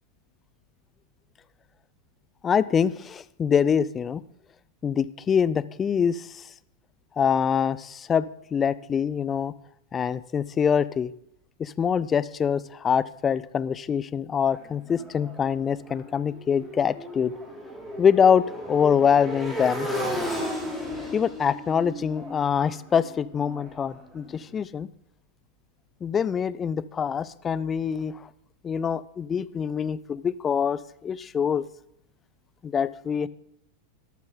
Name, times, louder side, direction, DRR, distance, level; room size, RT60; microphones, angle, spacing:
voice 1, 2.4-4.2 4.8-6.4 7.2-9.5 9.9-11.1 11.6-17.3 18.0-19.9 21.1-24.9 26.0-28.2 28.6-31.7 32.6-33.3, left 7 dB, 20° left, 18 dB, 0.4 m, -24 dB
Motorcycle, 14.5-24.4, equal, ahead, 3.3 m, -35 dB
13.0 x 12.0 x 3.9 m, 0.74 s
figure-of-eight pair, 90°, 0 cm